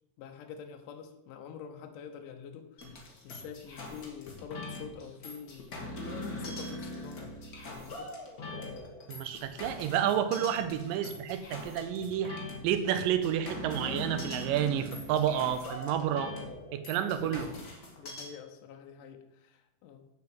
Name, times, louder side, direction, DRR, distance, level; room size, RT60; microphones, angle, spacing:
voice 1, 0.2-5.9 6.3-7.3 7.7-8.1 10.4-10.5 17.1-17.5 18.0-20.0, left 7 dB, 75° left, 5 dB, 2.3 m, -46 dB
sound 1, 2.8-18.3, left 2 dB, 40° left, 1.3 m, -42 dB
voice 2, 9.1-12.4 12.6-16.3 16.7-17.5, right 9 dB, 80° right, 10 dB, 2.3 m, -30 dB
7.5 x 5.8 x 7.7 m, 0.91 s
omnidirectional pair, 4.0 m